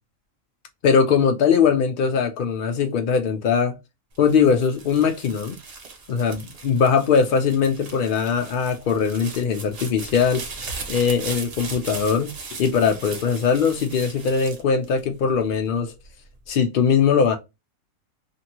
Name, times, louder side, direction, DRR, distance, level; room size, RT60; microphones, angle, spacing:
voice 1, 0.8-3.7 4.2-5.6 6.1-10.4 10.9-12.3 12.6-15.9 16.5-17.4, left 6 dB, 75° left, 0.4 m, -20 dB
sound 1, 4.1-15.5 16.0-16.6, right 4 dB, 50° right, 1.0 m, -38 dB
2.9 x 2.6 x 2.8 m
omnidirectional pair, 1.4 m